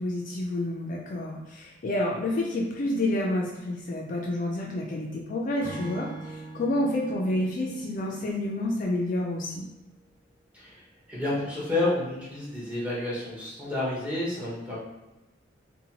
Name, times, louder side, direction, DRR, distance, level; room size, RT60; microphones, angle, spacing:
voice 1, 0.0-9.7, left 1 dB, 40° left, -1 dB, 0.3 m, -29 dB
Acoustic guitar / Strum, 5.6-9.0, right 2 dB, 35° right, 1.2 m, -43 dB
voice 2, 10.5-14.8, left 2 dB, 5° right, -7 dB, 0.8 m, -30 dB
2.7 x 2.1 x 2.8 m, 1.0 s
head